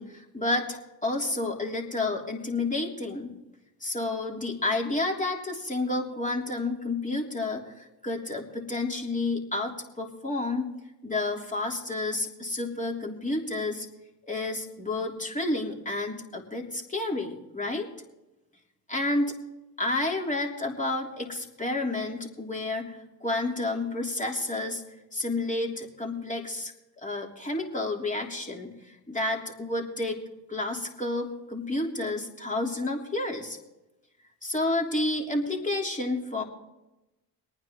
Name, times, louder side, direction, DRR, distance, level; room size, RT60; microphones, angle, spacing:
voice 1, 0.0-3.3 3.8-10.7 11.0-13.9 14.3-17.9 18.9-19.3 19.8-24.8 25.1-26.7 27.0-30.2 30.5-33.6 34.4-36.4, left 2 dB, 15° left, 0 dB, 3.1 m, -30 dB
23.5 x 9.6 x 3.7 m, 0.98 s
hypercardioid pair, 55°, 49 cm